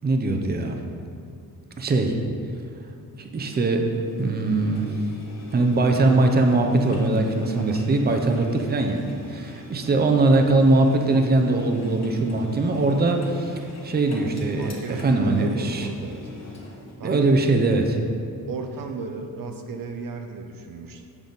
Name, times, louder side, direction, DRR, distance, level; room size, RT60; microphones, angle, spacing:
voice 1, 0.0-0.8 1.8-2.2 3.2-3.9 4.2-4.9 5.5-15.9 17.0-17.8, right 2 dB, 25° right, 4 dB, 0.6 m, -21 dB
Engine, 3.5-16.9, left 2 dB, 45° left, 1.3 m, -42 dB
voice 2, 7.6-7.9 14.5-16.3 17.0-17.5 18.5-21.1, right 4 dB, 65° right, 4 dB, 0.6 m, -34 dB
7.3 x 5.2 x 3.9 m, 2.5 s
cardioid pair, 90°, 36 cm